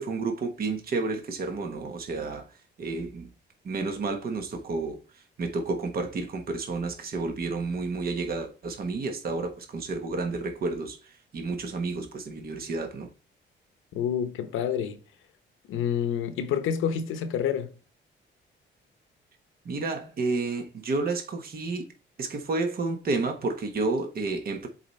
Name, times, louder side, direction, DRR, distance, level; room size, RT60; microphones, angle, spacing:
voice 1, 0.0-2.4 2.8-3.3 3.6-5.0 5.4-11.0 11.3-13.1 19.6-21.9 22.2-24.7, right 3 dB, 50° right, 1.2 m, -30 dB
voice 2, 13.9-15.0 15.7-17.7, left 8 dB, 85° left, 0.8 m, -28 dB
7.6 x 4.2 x 3.2 m
cardioid pair, 90°, 20 cm